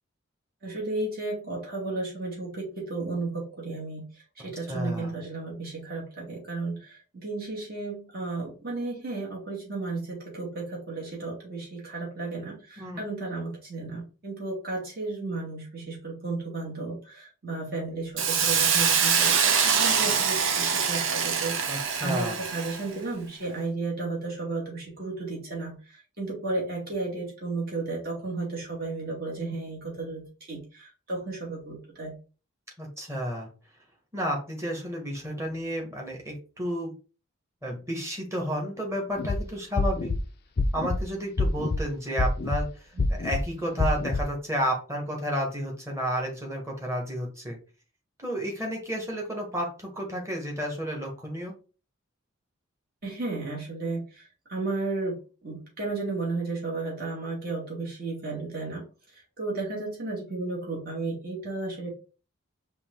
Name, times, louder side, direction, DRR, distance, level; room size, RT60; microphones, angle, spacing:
voice 1, 0.6-32.2 43.0-43.1 53.0-58.9 59.4-61.9, right 3 dB, 45° right, -3 dB, 2.3 m, -33 dB
voice 2, 4.7-5.1 12.8-13.0 21.7-22.4 32.8-33.5 34.1-36.9 37.6-40.1 40.7-47.6 48.2-51.6, equal, 15° right, 0 dB, 1.4 m, -31 dB
Hiss, 18.2-22.9, right 6 dB, 70° right, 0.8 m, -24 dB
sound 1, 39.2-39.4 39.8-40.2 40.6-41.0 41.4-41.8 42.2-42.6 43.0-43.4 43.8-44.2, left 3 dB, 50° left, 0.5 m, -26 dB
5.2 x 2.7 x 3.7 m, 0.35 s
head